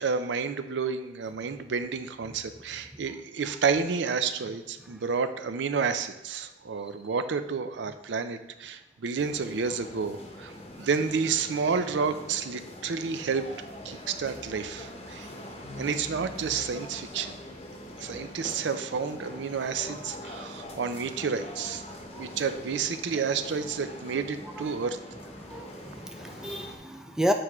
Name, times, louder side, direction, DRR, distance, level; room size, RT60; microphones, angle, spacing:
voice 1, 0.0-10.5 10.8-13.4 13.8-15.3 15.8-17.4 18.0-21.8 22.2-25.0, right 5 dB, 85° right, 10 dB, 0.4 m, -30 dB
sound 1, 9.1-26.8, left 1 dB, 35° left, 0.8 m, -43 dB
voice 2, 25.5-27.3, equal, 5° right, 5 dB, 0.3 m, -31 dB
7.8 x 4.7 x 3.0 m, 1.1 s
head